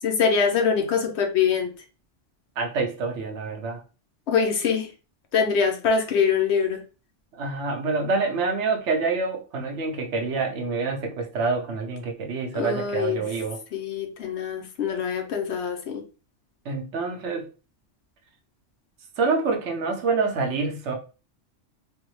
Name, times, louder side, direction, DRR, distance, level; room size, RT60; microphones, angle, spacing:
voice 1, 0.0-1.7 4.3-4.9 5.3-6.8 12.5-13.2 13.7-16.0, left 6 dB, 70° left, 0.9 m, -24 dB
voice 2, 2.6-3.8 7.4-13.6 16.7-17.5 19.2-20.9, right 4 dB, 70° right, 0.9 m, -27 dB
3.4 x 2.1 x 3.0 m
omnidirectional pair, 1.2 m